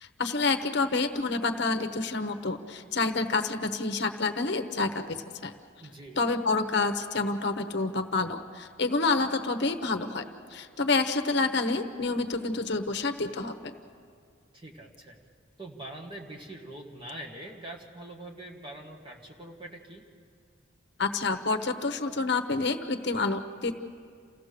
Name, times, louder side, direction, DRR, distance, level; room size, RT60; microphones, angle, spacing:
voice 1, 0.0-5.2 5.4-5.5 6.1-10.2 10.5-13.7 21.0-23.7, left 3 dB, 55° left, 7 dB, 1.0 m, -28 dB
voice 2, 5.8-6.2 14.5-15.2 15.6-20.0, right 1 dB, 25° right, 0 dB, 1.9 m, -43 dB
28.5 x 16.0 x 6.8 m, 2.2 s
head